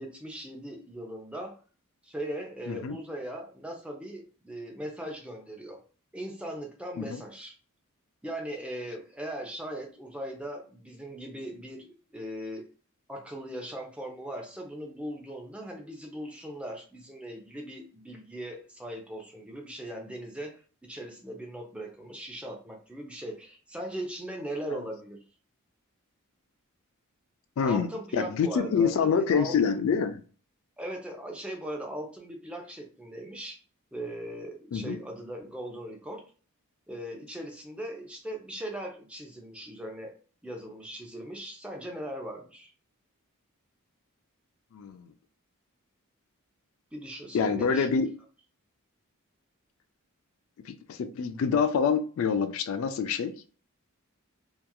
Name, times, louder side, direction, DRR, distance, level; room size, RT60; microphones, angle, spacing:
voice 1, 0.0-1.6 2.0-5.8 6.1-7.6 8.2-12.7 13.1-25.2 27.6-29.8 30.8-33.6 33.9-36.3 36.9-40.2 40.4-42.7 46.9-47.9, right 1 dB, 5° right, 0.4 m, -39 dB
voice 2, 27.6-30.2 34.7-35.0 44.7-45.1 47.3-48.1 50.7-53.3, left 6 dB, 65° left, 0.3 m, -26 dB
2.9 x 2.3 x 2.2 m
head